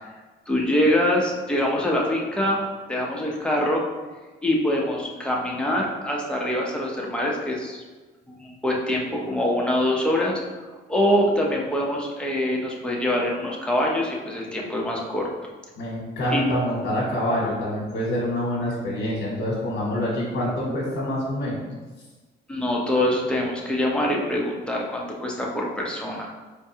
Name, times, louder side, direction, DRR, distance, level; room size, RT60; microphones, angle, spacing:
voice 1, 0.5-2.6 2.9-3.8 4.4-7.8 8.3-10.4 10.9-15.3 16.3-16.4 22.5-26.3, left 1 dB, 5° left, -2 dB, 0.7 m, -24 dB
voice 2, 15.8-21.7, equal, 65° left, -5 dB, 1.0 m, -26 dB
4.5 x 2.2 x 2.8 m, 1.3 s
cardioid pair, 90°, 20 cm